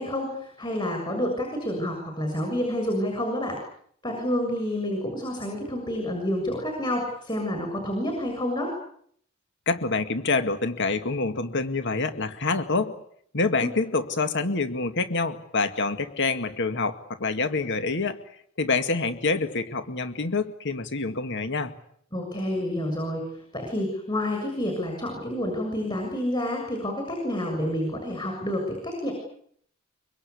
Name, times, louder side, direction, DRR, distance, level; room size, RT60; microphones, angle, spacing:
voice 1, 0.0-3.6 4.0-8.7 13.6-13.7 22.1-29.1, left 1 dB, 20° left, 3 dB, 6.9 m, -29 dB
voice 2, 9.7-13.0 13.3-18.2 18.6-21.7, left 3 dB, 60° left, 9 dB, 2.1 m, -26 dB
25.0 x 25.0 x 8.4 m, 0.67 s
head